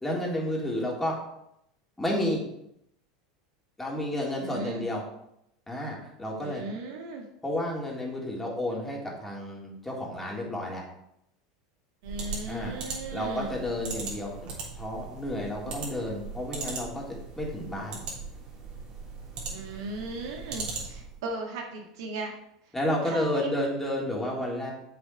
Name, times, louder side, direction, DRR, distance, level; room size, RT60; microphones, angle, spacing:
voice 1, 0.0-1.1 2.0-2.4 3.8-5.0 5.7-6.6 7.4-10.8 12.5-14.5 14.8-17.0 17.4-18.0 22.7-24.7, left 1 dB, 10° left, -3 dB, 3.3 m, -31 dB
voice 2, 4.4-4.8 6.4-7.2 12.0-13.5 19.5-22.3 23.0-23.5, right 3 dB, 70° right, 1 dB, 1.6 m, -37 dB
sound 1, 12.0-21.2, right 4 dB, 45° right, 3.4 m, -39 dB
7.7 x 6.9 x 4.8 m, 0.79 s
hypercardioid pair, 85°, 3 cm